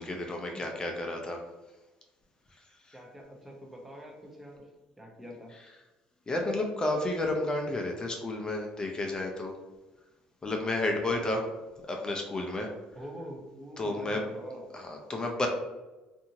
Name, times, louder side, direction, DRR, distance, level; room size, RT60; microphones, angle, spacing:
voice 1, 0.0-1.4 6.3-9.5 10.4-11.4 11.9-12.7 13.8-14.2 14.7-15.5, left 2 dB, 25° left, 2 dB, 0.5 m, -31 dB
voice 2, 2.9-4.6 5.0-5.5 11.0-11.3 12.9-14.8, equal, 5° right, 0 dB, 0.8 m, -45 dB
2.6 x 2.6 x 2.8 m, 1.1 s
supercardioid pair, 80°, 3 cm